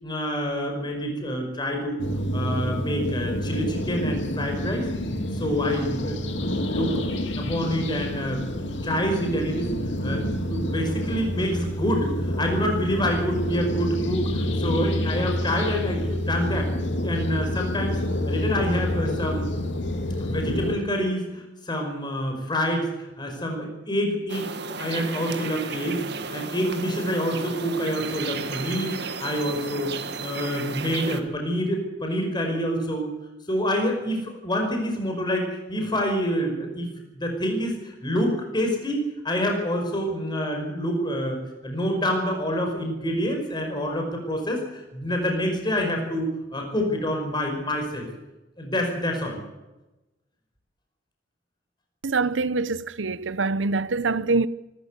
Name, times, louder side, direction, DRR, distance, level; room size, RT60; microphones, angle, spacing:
voice 1, 0.0-2.0 2.3-4.9 5.3-6.9 7.3-9.8 10.0-16.7 17.0-18.0 18.3-19.5 20.2-26.0 26.3-29.9 30.2-33.1 33.5-36.9 37.1-41.4 41.6-46.3 46.5-48.1 48.6-49.4, equal, 25° left, 5.3 m, -27 dB
sound 1, 2.0-20.8, left 1 dB, 70° left, 2.3 m, -28 dB
sound 2, 24.3-31.2, right 5 dB, 65° right, 1.9 m, -34 dB
voice 2, 52.0-54.5, right 3 dB, 85° right, 0.8 m, -24 dB
24.5 x 14.0 x 8.2 m
head